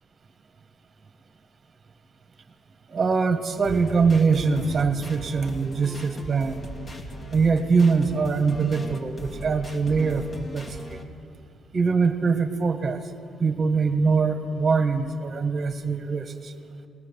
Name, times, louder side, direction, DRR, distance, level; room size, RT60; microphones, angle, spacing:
voice 1, 2.9-6.7 7.3-11.0 11.7-13.0 13.4-16.5, right 4 dB, 40° right, 7 dB, 1.5 m, -23 dB
sound 1, 3.6-11.0, equal, 35° left, 2.2 m, -39 dB
20.0 x 19.5 x 7.3 m, 2.4 s
cardioid pair, 90°, 0 cm